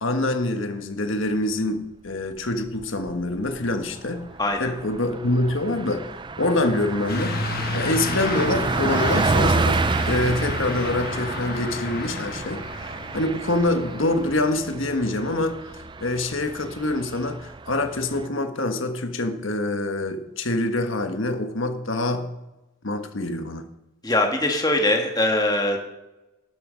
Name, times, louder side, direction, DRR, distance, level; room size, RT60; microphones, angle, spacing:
voice 1, 0.0-4.3 4.6-6.1 6.4-15.6 16.0-22.3 22.8-23.7, left 2 dB, 65° left, 7 dB, 1.5 m, -25 dB
Car passing by, 2.6-3.2 3.6-3.7 4.0-18.3, right 3 dB, 20° right, 0.4 m, -29 dB
voice 2, 4.4-4.7 24.0-25.8, left 1 dB, 20° left, 3 dB, 1.7 m, -22 dB
Truck / Accelerating revving vroom, 7.1-15.0, left 3 dB, 45° left, 1.3 m, -32 dB
12.5 x 12.0 x 5.2 m, 1.0 s
head